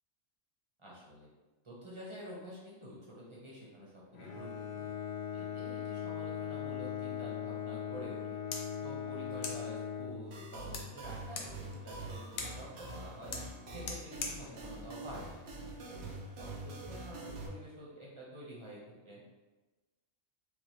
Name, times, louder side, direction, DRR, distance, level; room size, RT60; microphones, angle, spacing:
voice 1, 0.8-1.3 1.6-4.9 5.3-8.4 8.8-13.3 13.7-15.4 15.9-18.8 19.0-19.2, equal, 25° right, -6 dB, 1.0 m, -49 dB
Bowed string instrument, 4.1-10.8, left 8 dB, 55° left, 0.7 m, -40 dB
sound 1, 8.1-16.1, left 4 dB, 85° left, 1.1 m, -47 dB
sound 2, 10.3-17.5, right 2 dB, 60° right, 0.9 m, -45 dB
5.0 x 2.5 x 3.1 m, 1.2 s
omnidirectional pair, 1.4 m